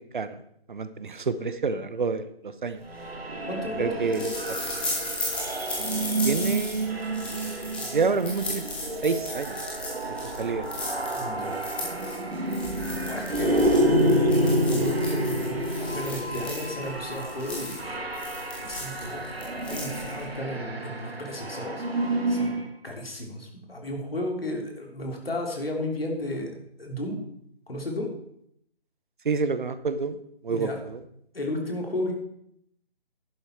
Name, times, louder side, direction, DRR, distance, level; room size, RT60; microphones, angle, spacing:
voice 1, 0.7-2.8 3.8-4.3 6.2-7.4 7.9-8.6 9.0-9.6 10.0-10.7 29.2-31.0, right 4 dB, 50° right, 12 dB, 1.0 m, -28 dB
sound 1, 2.9-20.4, left 1 dB, 5° left, 1.2 m, -36 dB
sound 2, 2.9-22.7, right 1 dB, 70° right, 2.2 m, -29 dB
voice 2, 3.5-4.2 11.2-11.6 13.0-13.6 14.0-18.0 18.6-21.8 22.3-22.6 22.8-26.5 26.8-27.2 27.7-28.1 30.5-30.8 31.3-32.1, left 1 dB, 70° left, 1 dB, 3.3 m, -34 dB
11.0 x 8.9 x 4.5 m, 0.73 s
figure-of-eight pair, 150°, 31 cm